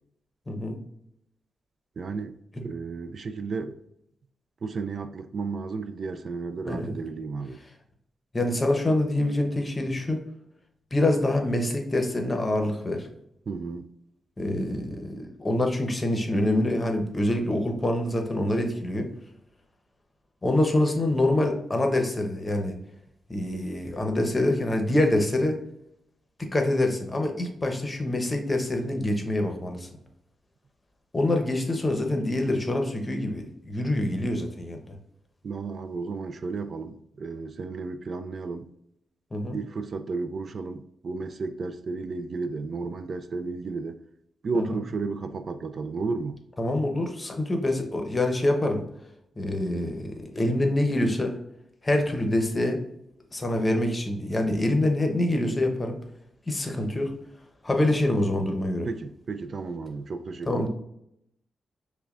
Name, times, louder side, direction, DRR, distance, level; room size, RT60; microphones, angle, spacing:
voice 1, 0.5-0.8 2.6-2.7 6.7-6.9 8.3-10.2 10.9-13.1 14.4-19.1 20.4-22.7 23.3-25.6 26.5-29.9 31.1-34.9 39.3-39.6 44.5-44.6 46.6-48.8 49.4-51.3 51.8-52.8 53.3-56.0 56.5-57.1 57.6-58.9 60.5-60.7, left 1 dB, 25° left, 0.8 m, -25 dB
voice 2, 2.0-3.8 4.6-7.6 13.5-13.9 35.4-38.7 39.5-44.0 44.4-46.4 58.9-60.7, right 4 dB, 55° right, 0.3 m, -33 dB
5.5 x 2.2 x 2.5 m
cardioid pair, 70°, 0 cm